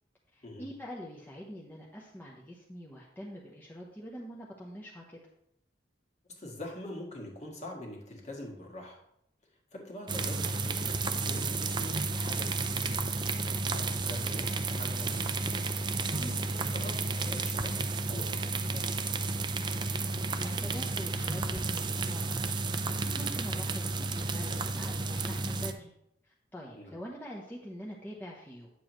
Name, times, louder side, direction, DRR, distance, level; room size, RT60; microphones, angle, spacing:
voice 1, 0.3-5.2 16.1-16.5 19.8-25.9 26.2-28.7, equal, 10° left, -3 dB, 0.8 m, -45 dB
voice 2, 6.3-9.0 9.7-13.1 13.7-15.3 15.9-18.8 26.8-26.9, left 1 dB, 40° left, -1 dB, 1.7 m, -44 dB
sound 1, 10.1-25.7, right 3 dB, 25° right, 0.4 m, -32 dB
8.9 x 7.0 x 3.1 m, 0.76 s
head